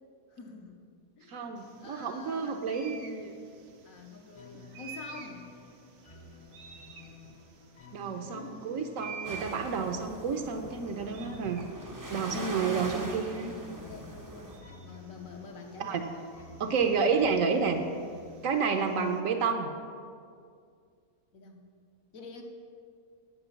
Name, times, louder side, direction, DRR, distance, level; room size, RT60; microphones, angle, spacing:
voice 1, 0.3-0.8 1.2-2.9 3.8-5.5 8.1-8.6 12.7-14.5 14.8-16.1 21.3-21.6 22.1-22.4, left 3 dB, 65° left, 1 dB, 1.4 m, -48 dB
voice 2, 1.3-3.3 7.9-11.6 12.1-13.6 15.8-16.0 16.6-17.8 18.4-19.7, right 5 dB, 65° right, 6 dB, 1.0 m, -30 dB
sound 1, 1.6-19.2, right 6 dB, 90° right, 1.4 m, -51 dB
sound 2, 4.3-19.8, left 3 dB, 35° left, 0.6 m, -52 dB
sound 3, 9.2-14.6, right 1 dB, 25° right, 0.4 m, -41 dB
8.1 x 8.0 x 5.8 m, 2.2 s
omnidirectional pair, 1.6 m